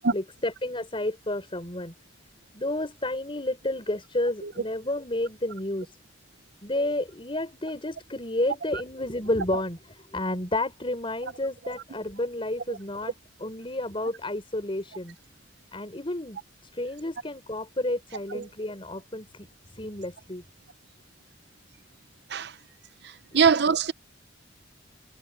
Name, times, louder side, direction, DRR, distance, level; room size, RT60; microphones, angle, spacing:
voice 1, 0.1-1.9 2.5-6.0 6.6-13.1 13.4-15.1 15.7-16.4 16.7-19.5 19.7-20.4 23.3-23.4, left 1 dB, 30° left, 5.2 m, -31 dB
voice 2, 23.0-23.9, right 6 dB, 65° right, 0.7 m, -23 dB
head